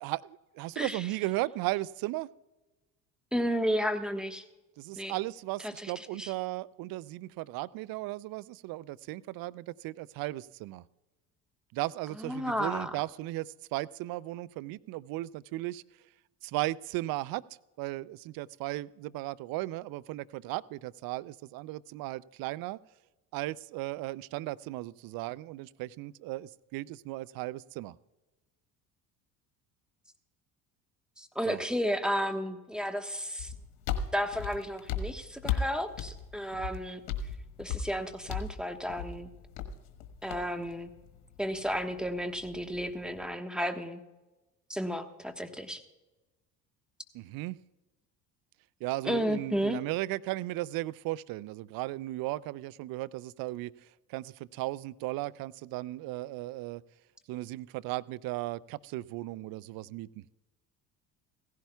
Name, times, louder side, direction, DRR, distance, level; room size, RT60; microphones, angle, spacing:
voice 1, 0.0-2.3 4.8-10.8 11.7-15.8 16.4-17.4 17.8-22.8 23.3-28.0 31.5-31.6 47.1-47.6 48.8-53.7 54.1-56.8 57.3-60.2, right 18 dB, 55° right, 19 dB, 0.5 m, -36 dB
voice 2, 3.3-4.4 5.0-5.2 5.6-6.3 12.2-12.9 31.2-33.5 34.1-37.0 37.6-39.3 40.2-40.9 41.4-44.0 44.7-45.8 49.1-49.8, equal, ahead, 6 dB, 1.2 m, -33 dB
sound 1, 33.4-43.3, left 6 dB, 70° left, 1.4 m, -38 dB
16.5 x 15.5 x 2.3 m, 1.1 s
hypercardioid pair, 60°, 44 cm